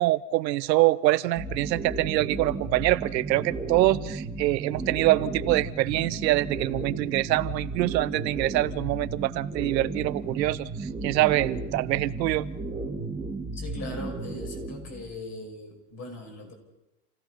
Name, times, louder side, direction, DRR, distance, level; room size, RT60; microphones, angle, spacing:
voice 1, 0.0-12.5, right 17 dB, 80° right, 15 dB, 0.9 m, -25 dB
sound 1, 1.4-15.1, right 3 dB, 5° right, 2.9 m, -34 dB
voice 2, 13.5-16.5, left 2 dB, 30° left, 3 dB, 5.9 m, -40 dB
28.0 x 16.0 x 5.7 m, 0.91 s
supercardioid pair, 135°, 50 cm